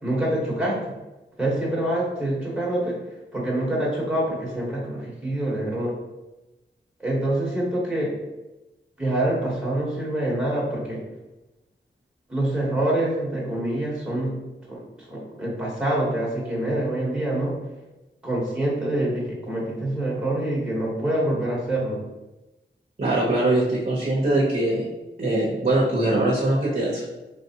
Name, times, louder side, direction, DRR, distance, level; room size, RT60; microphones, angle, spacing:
voice 1, 0.0-0.8 1.4-3.0 3.3-5.9 7.0-8.1 9.0-11.0 12.3-14.3 14.7-17.5 18.2-22.0, right 1 dB, 5° right, -5 dB, 1.2 m, -26 dB
voice 2, 23.0-24.9 25.2-27.1, right 2 dB, 40° right, -4 dB, 0.8 m, -22 dB
4.1 x 3.4 x 2.8 m, 1.0 s
wide cardioid pair, 100°, 20 cm